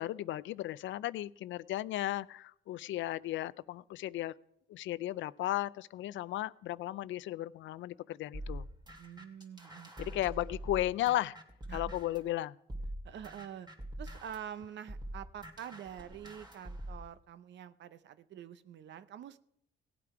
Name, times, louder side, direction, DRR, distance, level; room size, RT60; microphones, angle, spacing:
voice 1, 0.0-4.3 4.7-8.7 10.0-11.4 11.7-12.5, left 14 dB, 75° left, 19 dB, 0.4 m, -35 dB
sound 1, 8.3-12.3 12.7-17.1, right 1 dB, 20° right, 2.4 m, -44 dB
voice 2, 9.0-10.2 11.7-11.9 13.0-13.7 14.0-19.4, right 9 dB, 65° right, 13 dB, 0.7 m, -46 dB
17.5 x 8.5 x 4.8 m, 0.75 s
cardioid pair, 90°, 20 cm